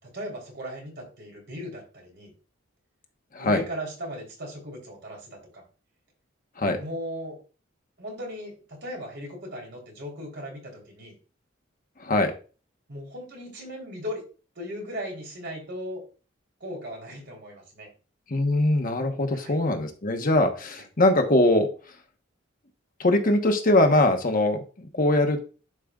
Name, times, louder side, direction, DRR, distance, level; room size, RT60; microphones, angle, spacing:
voice 1, 0.0-2.3 3.4-5.6 6.8-7.4 8.0-11.1 12.9-14.2 14.5-16.0 16.6-17.9 19.3-19.6 20.7-20.8, equal, 55° right, 0 dB, 3.4 m, -37 dB
voice 2, 12.0-12.3 18.3-21.7 23.0-25.4, left 1 dB, 45° left, 5 dB, 1.0 m, -22 dB
11.0 x 5.0 x 2.3 m, 0.35 s
head